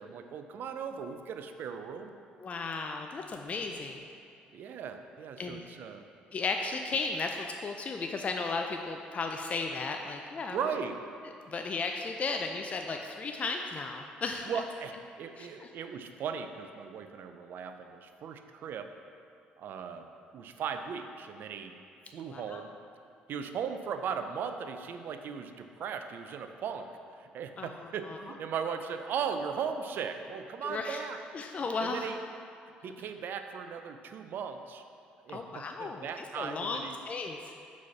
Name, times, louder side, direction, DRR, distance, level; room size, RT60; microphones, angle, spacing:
voice 1, 0.0-2.1 4.5-6.1 10.5-11.0 14.5-18.9 19.6-21.7 22.1-22.7 23.3-26.9 27.1-31.2 31.8-32.2 32.8-34.8 35.2-37.0, right 7 dB, 65° right, 7 dB, 0.4 m, -38 dB
voice 2, 2.4-4.1 5.4-5.6 6.3-10.6 11.5-14.5 15.4-15.7 22.3-22.6 27.6-28.2 30.6-31.0 31.3-32.1 35.3-37.5, left 4 dB, 40° left, 3 dB, 0.4 m, -35 dB
4.8 x 4.1 x 5.7 m, 2.5 s
supercardioid pair, 70°, 4 cm